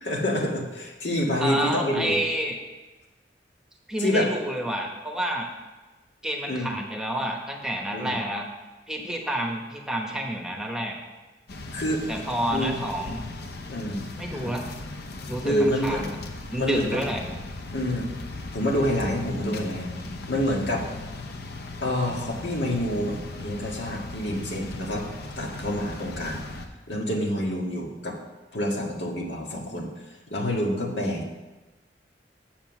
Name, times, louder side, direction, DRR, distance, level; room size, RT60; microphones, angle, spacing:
voice 1, 0.0-2.2 4.0-4.3 6.5-6.8 7.9-8.2 11.7-12.1 12.5-12.8 13.7-14.5 15.4-16.1 16.6-17.0 17.7-18.1 18.5-19.9 20.3-20.9 21.8-25.1 25.4-26.4 26.9-28.2 28.5-29.9 30.3-31.2, equal, 85° left, -1 dB, 1.8 m, -27 dB
voice 2, 1.4-2.5 3.9-5.5 6.2-8.4 8.9-10.9 12.1-13.2 14.2-14.6 15.3-16.0 16.5-17.2, equal, 5° right, 1 dB, 1.0 m, -29 dB
sound 1, 11.5-26.7, left 2 dB, 65° left, 0.8 m, -38 dB
7.7 x 7.1 x 6.0 m, 1.2 s
head